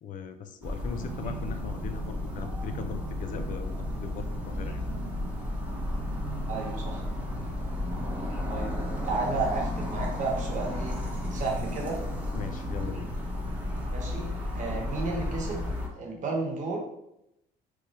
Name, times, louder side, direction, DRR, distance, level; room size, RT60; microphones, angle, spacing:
voice 1, 0.0-3.7 4.0-4.8 7.4-7.7 12.3-13.1, left 6 dB, 50° left, 8 dB, 0.4 m, -39 dB
sound 1, 0.6-15.9, left 1 dB, 10° right, 0.9 m, -33 dB
sound 2, 1.0-15.3, right 7 dB, 65° right, 0.6 m, -44 dB
voice 2, 6.5-7.0 8.5-8.7 9.0-11.0 11.3-12.0 13.9-14.3 14.5-15.7 16.0-16.8, right 3 dB, 50° right, 0 dB, 1.0 m, -32 dB
3.0 x 2.3 x 4.1 m, 0.82 s
cardioid pair, 110°, 17 cm